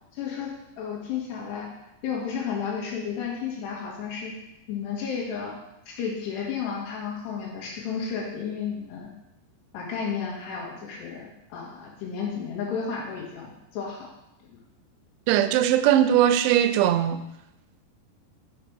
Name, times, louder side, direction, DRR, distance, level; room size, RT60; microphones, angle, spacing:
voice 1, 0.1-1.8 2.0-4.3 4.7-5.6 5.9-9.1 9.7-14.1, left 6 dB, 80° left, 3.6 m, -32 dB
voice 2, 15.3-17.2, right 11 dB, 85° right, 2.7 m, -20 dB
7.7 x 4.6 x 5.1 m
omnidirectional pair, 4.9 m